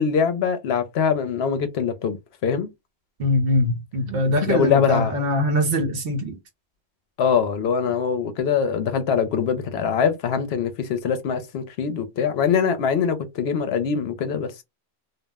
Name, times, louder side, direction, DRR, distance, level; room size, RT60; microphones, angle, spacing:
voice 1, 0.0-2.2 2.4-2.7 4.4-5.2 7.2-14.5, left 6 dB, 70° left, 0.8 m, -23 dB
voice 2, 3.2-6.4, left 1 dB, 65° right, 0.9 m, -22 dB
2.4 x 2.0 x 3.4 m
omnidirectional pair, 1.1 m